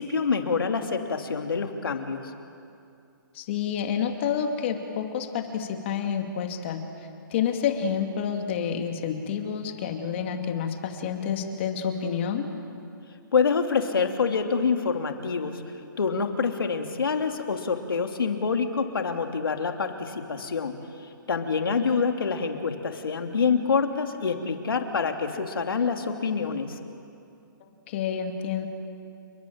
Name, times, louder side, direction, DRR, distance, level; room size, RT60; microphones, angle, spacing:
voice 1, 0.0-2.3 13.3-15.6 16.0-20.7 21.3-26.8, left 5 dB, 80° left, 4 dB, 3.1 m, -26 dB
voice 2, 3.3-6.8 7.3-12.5 27.9-28.7, left 7 dB, 30° left, 5 dB, 2.5 m, -29 dB
30.0 x 22.0 x 8.9 m, 2.5 s
hypercardioid pair, 165°, 12 cm